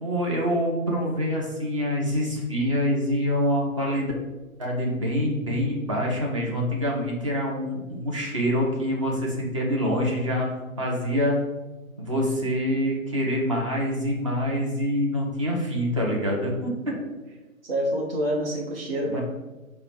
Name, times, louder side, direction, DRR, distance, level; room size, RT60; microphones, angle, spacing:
voice 1, 0.0-4.1 4.6-10.5 10.8-11.4 12.0-16.7 19.0-19.2, equal, 25° right, -2 dB, 0.6 m, -25 dB
voice 2, 17.6-19.2, equal, 40° right, -3 dB, 1.2 m, -27 dB
4.9 x 2.1 x 4.5 m, 1.1 s
figure-of-eight pair, 140°, 42 cm